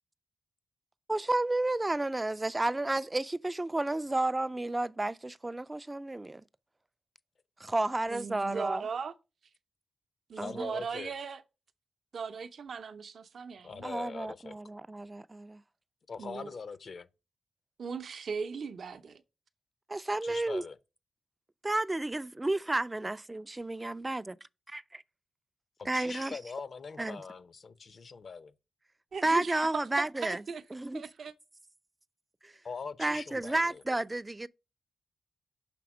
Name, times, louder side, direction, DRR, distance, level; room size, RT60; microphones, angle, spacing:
voice 1, 1.1-6.4 7.6-8.8 10.4-10.7 13.8-15.6 19.9-20.6 21.6-24.4 24.7-25.0 25.9-26.4 27.0-27.2 29.2-30.4 30.7-31.0 32.4-32.5 33.0-34.5, right 2 dB, 20° right, 0.3 m, -31 dB
voice 2, 8.1-9.1 10.3-11.4 12.1-13.9 16.2-16.5 17.8-19.2 29.1-30.6 30.9-31.3, right 5 dB, 65° right, 0.6 m, -38 dB
voice 3, 10.4-11.1 13.6-14.6 16.1-17.1 20.2-20.8 25.8-28.5 32.6-33.8, left 5 dB, 55° left, 0.6 m, -42 dB
6.0 x 3.5 x 6.0 m
cardioid pair, 85°, 0 cm